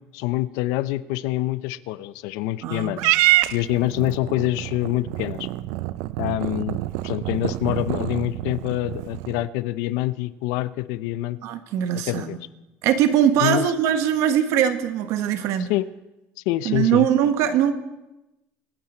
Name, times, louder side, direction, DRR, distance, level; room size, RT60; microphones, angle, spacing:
voice 1, 0.1-3.0 3.5-5.5 6.2-11.4 12.1-12.4 13.4-13.7 15.6-15.9 16.5-17.1, left 16 dB, 85° left, 16 dB, 0.6 m, -26 dB
voice 2, 2.6-3.1 11.4-12.3 12.8-15.7 16.6-17.7, right 9 dB, 70° right, 9 dB, 1.3 m, -21 dB
Purr / Meow, 3.0-9.5, right 17 dB, 85° right, 0.4 m, -26 dB
25.0 x 9.7 x 4.4 m, 0.97 s
cardioid pair, 145°, 5 cm